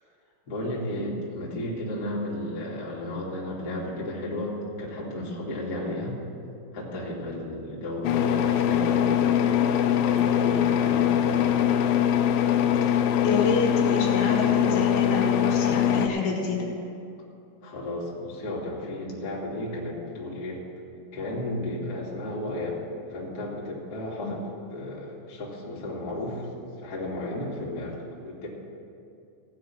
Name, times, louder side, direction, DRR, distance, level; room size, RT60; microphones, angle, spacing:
voice 1, 0.5-6.2 6.7-9.7 10.0-11.6 17.6-20.6 21.1-22.8 23.1-24.4 24.7-26.5 26.8-28.5, left 1 dB, 30° left, -5 dB, 2.1 m, -33 dB
sound 1, 8.0-16.1, left 9 dB, 90° left, 2.8 m, -22 dB
voice 2, 13.2-16.7 24.2-24.3, left 3 dB, 75° left, -1 dB, 3.4 m, -28 dB
16.0 x 5.7 x 8.9 m, 2.5 s
omnidirectional pair, 4.7 m